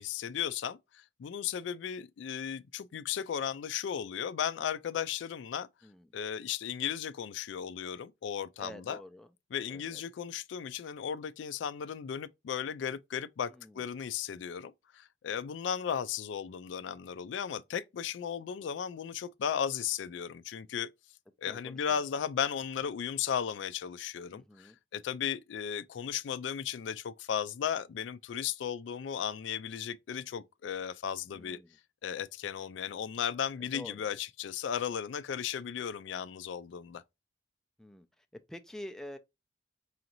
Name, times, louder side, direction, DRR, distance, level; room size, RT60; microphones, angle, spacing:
voice 1, 0.0-5.7 6.1-9.0 9.5-20.9 21.4-31.6 32.0-37.0, left 8 dB, 85° left, 0.3 m, -35 dB
voice 2, 8.6-9.3 9.7-10.0 13.5-13.8 21.4-22.0 24.3-24.8 31.3-31.8 33.7-34.1 37.8-38.1 38.5-39.2, left 1 dB, 5° left, 0.3 m, -47 dB
4.8 x 2.6 x 2.8 m
head